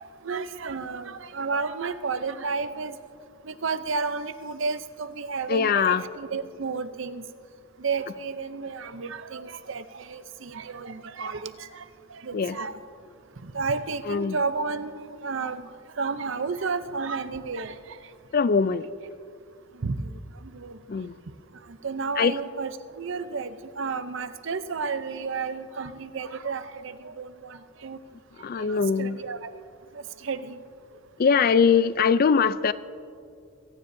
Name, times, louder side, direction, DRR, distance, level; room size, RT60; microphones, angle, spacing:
voice 1, 0.2-3.0 3.4-7.2 7.8-11.8 12.1-12.8 13.4-15.7 16.0-17.8 19.8-20.1 20.5-20.8 21.8-28.0 28.7-29.5 29.9-30.5, right 4 dB, 60° right, 12 dB, 0.6 m, -32 dB
voice 2, 5.5-6.0 12.3-12.6 14.1-14.4 18.3-18.9 20.9-21.1 22.2-22.3 28.4-29.2 31.2-32.7, left 6 dB, 45° left, 16 dB, 0.3 m, -22 dB
24.0 x 16.0 x 2.7 m, 2.5 s
head